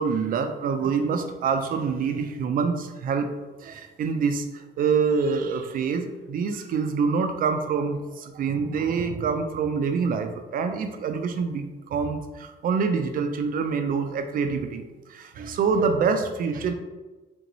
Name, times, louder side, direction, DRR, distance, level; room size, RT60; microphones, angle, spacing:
voice 1, 0.0-3.3 3.6-14.8 15.1-16.7, right 5 dB, 45° right, 7 dB, 0.4 m, -26 dB
3.7 x 2.5 x 3.0 m, 1.2 s
cardioid pair, 145°, 20 cm